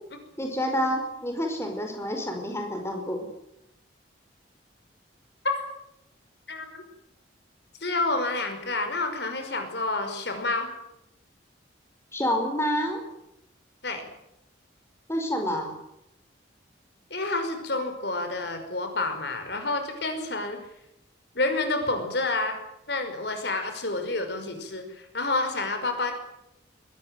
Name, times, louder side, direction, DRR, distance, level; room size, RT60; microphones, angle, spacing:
voice 1, 0.4-3.2 12.1-13.0 15.1-15.8, equal, 15° left, 3 dB, 4.8 m, -28 dB
voice 2, 6.5-6.8 7.8-10.7 13.8-14.1 17.1-20.6 21.4-22.6 22.9-26.1, left 2 dB, 60° left, 6 dB, 5.4 m, -29 dB
22.5 x 19.0 x 9.3 m, 0.81 s
head